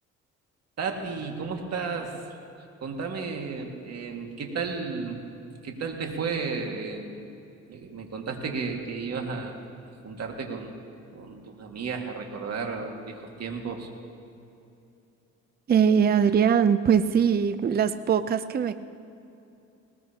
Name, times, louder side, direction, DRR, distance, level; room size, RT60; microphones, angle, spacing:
voice 1, 0.8-2.1 2.8-5.2 5.6-7.3 7.7-9.6 10.0-10.8 11.1-13.9, right 5 dB, 55° right, 2 dB, 2.1 m, -33 dB
voice 2, 15.7-18.8, right 7 dB, 30° right, 12 dB, 0.5 m, -21 dB
20.0 x 19.5 x 2.9 m, 2.8 s
cardioid pair, 90°, 30 cm